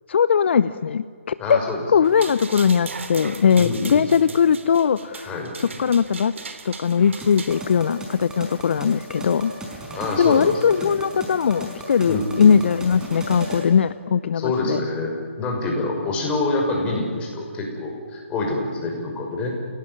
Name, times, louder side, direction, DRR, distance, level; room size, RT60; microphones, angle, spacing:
voice 1, 0.1-1.6 1.9-5.3 5.6-6.3 6.6-9.5 10.2-14.8, left 7 dB, 60° left, 15 dB, 0.7 m, -20 dB
voice 2, 1.4-1.9 3.6-4.1 5.3-5.5 9.9-10.9 12.1-12.6 14.3-19.6, left 2 dB, 15° left, 0 dB, 6.4 m, -26 dB
sound 1, 2.0-7.6, right 4 dB, 70° right, 3.2 m, -37 dB
sound 2, 7.2-13.7, right 1 dB, 10° right, 5.2 m, -35 dB
29.0 x 18.0 x 9.9 m, 2.1 s
figure-of-eight pair, 145°, 7 cm